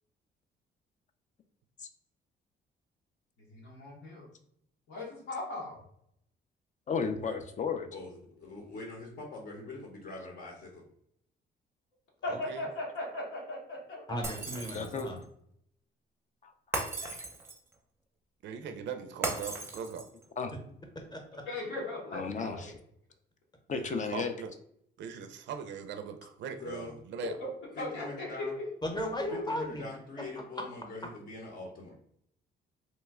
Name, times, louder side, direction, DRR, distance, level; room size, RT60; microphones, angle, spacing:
voice 1, 3.5-4.3 4.9-5.8 12.2-14.2 21.4-22.7 27.4-27.5 27.8-28.3, left 2 dB, 90° left, -4 dB, 1.0 m, -38 dB
voice 2, 6.9-8.0 14.0-14.1 14.7-15.1 16.4-16.5 17.0-17.2 20.4-20.5 22.1-22.7 23.7-24.3, left 5 dB, 40° left, 7 dB, 0.4 m, -34 dB
voice 3, 7.9-10.8 26.6-26.9 27.8-28.6 29.3-31.9, left 2 dB, 55° left, -1 dB, 0.8 m, -43 dB
voice 4, 12.3-12.6 18.4-20.0 23.7-24.5 25.0-27.4, right 7 dB, 65° right, 7 dB, 0.4 m, -40 dB
voice 5, 14.1-15.2 21.1-21.4 28.8-29.8 30.5-30.6, equal, 20° left, 2 dB, 0.8 m, -35 dB
Shatter, 14.2-15.2 16.7-17.7 19.2-20.2, right 2 dB, 10° right, 0.6 m, -36 dB
3.0 x 2.2 x 3.5 m, 0.71 s
cardioid pair, 90°, 20 cm